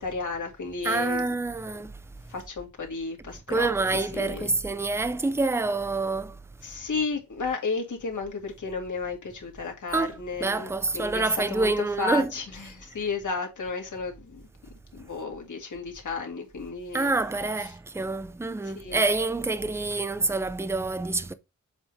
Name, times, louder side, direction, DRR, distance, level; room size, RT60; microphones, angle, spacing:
voice 1, 0.0-1.3 2.3-4.5 6.6-14.4 14.9-17.1 18.6-19.0, left 4 dB, 75° left, 2.1 m, -33 dB
voice 2, 0.8-1.9 3.5-6.4 9.9-12.3 16.9-21.3, right 3 dB, 10° right, 0.5 m, -27 dB
7.3 x 3.7 x 4.4 m
wide cardioid pair, 165°, 30 cm